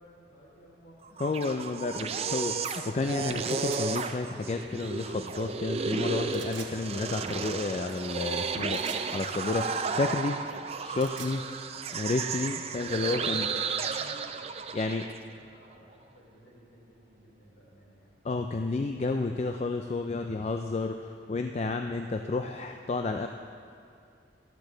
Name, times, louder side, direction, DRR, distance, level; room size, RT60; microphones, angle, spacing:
voice 1, 0.0-1.4 13.0-18.1, equal, 60° left, -4 dB, 3.6 m, -54 dB
sound 1, 1.0-15.2, right 5 dB, 35° right, 0.4 m, -33 dB
voice 2, 1.2-8.8 9.1-10.4 10.8-11.4 11.9-13.5 14.7-15.1 18.2-23.3, left 3 dB, 35° left, 6 dB, 0.4 m, -31 dB
sound 2, 3.5-3.9 6.3-6.7 8.7-9.1 10.8-11.4, right 8 dB, 85° right, 1.1 m, -44 dB
13.5 x 11.5 x 3.9 m, 2.3 s
head